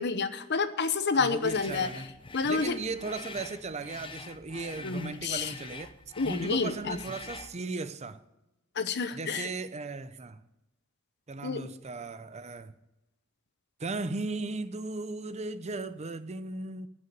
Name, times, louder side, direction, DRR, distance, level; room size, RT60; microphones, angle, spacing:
voice 1, 0.0-1.9 2.3-2.8 4.8-5.5 6.2-7.0 8.8-9.5 11.4-11.7, left 4 dB, 55° left, 0.9 m, -29 dB
voice 2, 1.2-2.1 2.5-5.9 6.2-8.2 9.1-10.4 11.3-12.8 13.8-16.9, right 3 dB, 30° right, 0.6 m, -36 dB
sound 1, 1.4-7.6, left 4 dB, 25° left, 0.8 m, -45 dB
14.5 x 6.6 x 9.2 m
head